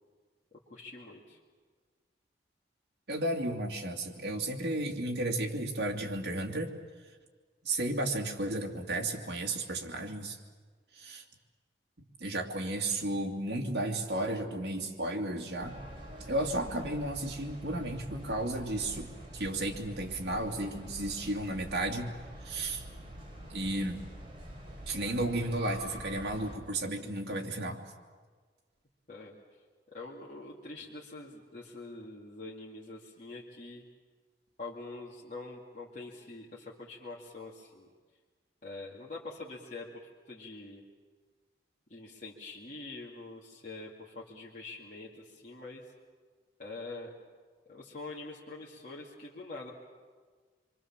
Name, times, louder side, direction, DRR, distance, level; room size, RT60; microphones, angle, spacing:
voice 1, 0.7-1.4 29.1-29.4 29.9-33.8 34.6-37.9 38.6-40.8 41.9-45.8 46.6-47.1 47.7-49.7, left 3 dB, 45° left, -5 dB, 2.5 m, -45 dB
voice 2, 3.1-6.7 7.6-10.4 10.9-11.2 12.2-15.8 16.2-22.1 22.4-22.8 23.5-24.1 24.9-27.8, right 1 dB, 70° right, 1 dB, 2.6 m, -33 dB
sound 1, 15.6-26.6, right 1 dB, 30° right, 4.4 m, -46 dB
27.0 x 24.0 x 7.4 m, 1.5 s
head